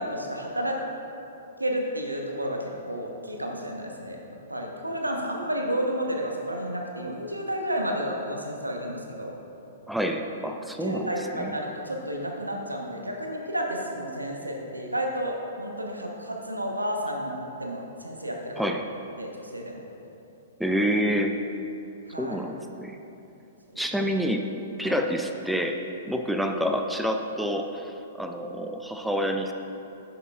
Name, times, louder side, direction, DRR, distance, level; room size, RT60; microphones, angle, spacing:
voice 1, 0.1-0.8 1.6-4.2 4.5-9.3 10.8-18.8 19.2-19.8 22.1-22.4 23.7-24.0 24.8-25.0, equal, 90° right, 1 dB, 1.1 m, -31 dB
voice 2, 9.9-11.6 18.6-18.9 20.6-21.4 22.2-23.0 23.8-24.5 24.8-29.5, equal, ahead, 4 dB, 0.4 m, -28 dB
10.5 x 8.1 x 2.4 m, 2.9 s
figure-of-eight pair, 110°, 0 cm